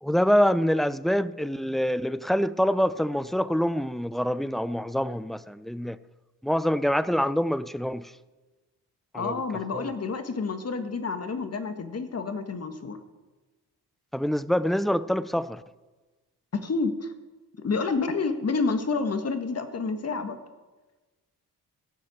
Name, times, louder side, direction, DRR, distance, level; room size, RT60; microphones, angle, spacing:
voice 1, 0.0-6.0 6.4-8.1 9.1-9.4 9.7-9.9 14.1-15.6, equal, ahead, 0.5 m, -25 dB
voice 2, 9.1-13.0 16.5-17.1 17.6-20.4, left 4 dB, 40° left, 1.7 m, -29 dB
15.5 x 6.5 x 8.8 m
cardioid pair, 70°, 38 cm